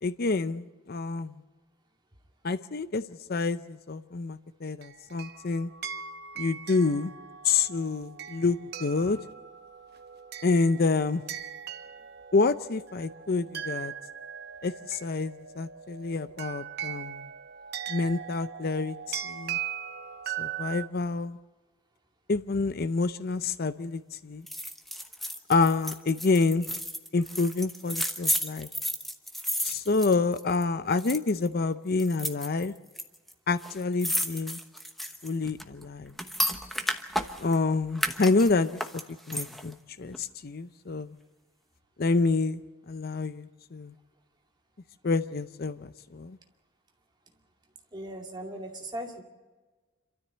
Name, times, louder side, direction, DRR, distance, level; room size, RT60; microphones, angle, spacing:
voice 1, 0.0-1.4 2.4-5.7 6.4-7.1 7.4-9.2 10.4-11.2 12.3-13.9 14.6-17.3 17.9-19.6 20.4-21.4 22.3-24.5 25.5-26.7 27.1-28.7 29.6-32.7 33.5-34.6 35.2-36.1 37.4-38.8 39.3-41.2 42.0-42.6 42.9-43.9 45.0-46.4, left 3 dB, 45° left, 12 dB, 0.6 m, -28 dB
sound 1, 4.8-20.9, right 9 dB, 50° right, 1.0 m, -40 dB
sound 2, 24.5-30.6 30.9-31.5 32.0-33.0 33.3-33.4 33.6-37.6 38.0-39.7 40.1-40.2, equal, ahead, 1.1 m, -32 dB
voice 2, 47.9-49.2, right 1 dB, 20° right, 1 dB, 2.4 m, -38 dB
27.0 x 13.5 x 8.0 m, 1.3 s
head